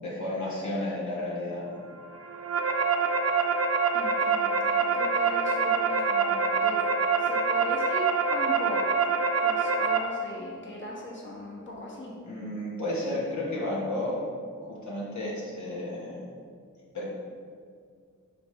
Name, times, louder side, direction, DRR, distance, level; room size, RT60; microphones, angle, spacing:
voice 1, 0.0-1.8 12.2-14.3 14.6-16.2 16.9-17.0, left 1 dB, 65° left, -6 dB, 1.4 m, -32 dB
sound 1, 2.1-10.0, right 4 dB, 50° right, 0.7 m, -25 dB
voice 2, 3.9-6.8 7.2-8.8 9.4-12.1, left 1 dB, 40° left, -4 dB, 1.4 m, -39 dB
9.4 x 3.4 x 3.2 m, 2.2 s
cardioid pair, 65°, 31 cm